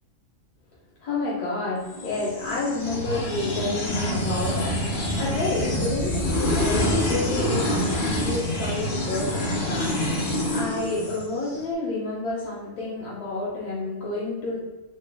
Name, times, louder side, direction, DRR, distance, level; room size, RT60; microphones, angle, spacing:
voice 1, 1.0-4.7 5.2-14.6, left 2 dB, 85° left, -6 dB, 1.4 m, -30 dB
sound 1, 1.9-11.6, left 1 dB, 50° left, 0.7 m, -26 dB
4.0 x 2.2 x 3.3 m, 1.2 s
omnidirectional pair, 1.6 m